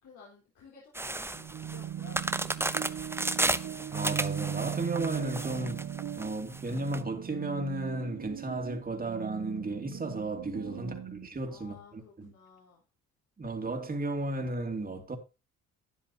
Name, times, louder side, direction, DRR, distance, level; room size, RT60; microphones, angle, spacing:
voice 1, 0.0-2.6 10.6-11.1 11.4-12.8, left 5 dB, 70° left, 4.3 m, -55 dB
sound 1, 1.0-7.0, right 2 dB, 10° right, 0.8 m, -33 dB
sound 2, 1.3-11.3, right 9 dB, 65° right, 1.5 m, -39 dB
voice 2, 3.9-5.8 6.2-12.3 13.4-15.2, right 2 dB, 30° right, 2.9 m, -34 dB
12.5 x 9.8 x 2.9 m
cardioid pair, 90°, 30 cm